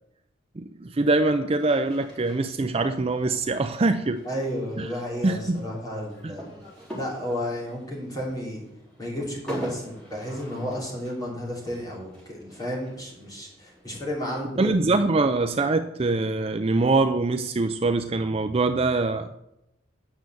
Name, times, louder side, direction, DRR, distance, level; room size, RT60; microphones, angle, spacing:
voice 1, 0.6-4.2 4.8-4.9 5.2-5.7 6.2-6.3 14.6-19.3, right 3 dB, 30° right, 8 dB, 0.4 m, -23 dB
sound 1, 1.6-14.5, right 1 dB, 5° left, 4.0 m, -45 dB
voice 2, 4.2-6.4 6.9-8.6 9.0-15.0, equal, 20° left, -3 dB, 3.5 m, -32 dB
9.7 x 6.8 x 7.8 m, 0.85 s
head